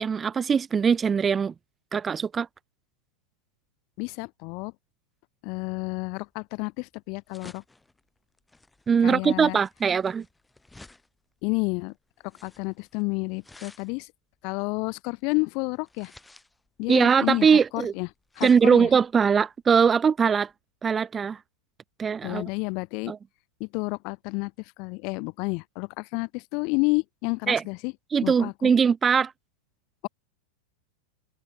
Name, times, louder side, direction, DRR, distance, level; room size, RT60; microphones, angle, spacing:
voice 1, 0.0-1.5 1.9-2.5 8.9-10.2 16.9-17.9 18.4-20.5 20.8-21.4 22.0-22.4 23.1-23.2 27.5-27.6 28.1-29.3, right 6 dB, 10° right, 0.7 m, -21 dB
voice 2, 4.0-4.7 5.4-7.6 9.0-9.6 11.4-11.9 12.4-14.1 14.4-16.1 16.8-18.1 18.4-18.9 22.2-23.1 23.6-24.5 24.8-27.9 28.2-28.7, left 32 dB, 35° left, 1.1 m, -30 dB
sound 1, 5.7-20.5, left 2 dB, 5° left, 7.4 m, -55 dB
open air
supercardioid pair, 175°, 0 cm